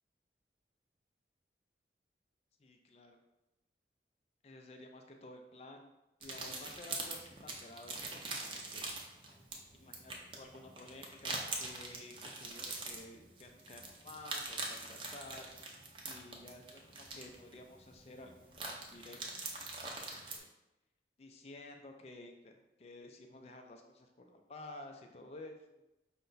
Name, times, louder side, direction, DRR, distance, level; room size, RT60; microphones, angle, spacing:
voice 1, 2.6-3.2 4.4-5.9 6.2-8.9 9.7-11.3 11.6-15.5 16.0-19.2 19.6-19.7 20.3-20.5 21.2-25.8, left 2 dB, 35° left, 4 dB, 0.4 m, -52 dB
sound 1, 6.2-20.4, right 3 dB, 30° right, 0.5 m, -44 dB
5.5 x 2.2 x 3.9 m, 0.97 s
head